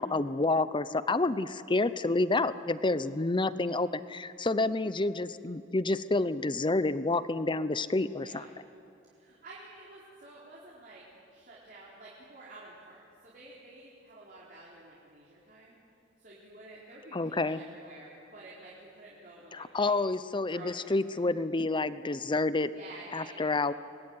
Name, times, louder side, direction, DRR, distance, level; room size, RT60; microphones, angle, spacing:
voice 1, 0.0-8.4 17.1-17.6 19.5-22.7 23.1-23.7, left 2 dB, 25° left, 14 dB, 0.7 m, -29 dB
voice 2, 8.2-8.5 9.1-11.0 11.3-15.8 16.2-19.9 20.5-21.2 22.6-23.6, right 2 dB, 50° right, -6 dB, 4.3 m, -50 dB
25.5 x 20.5 x 9.7 m, 2.6 s
head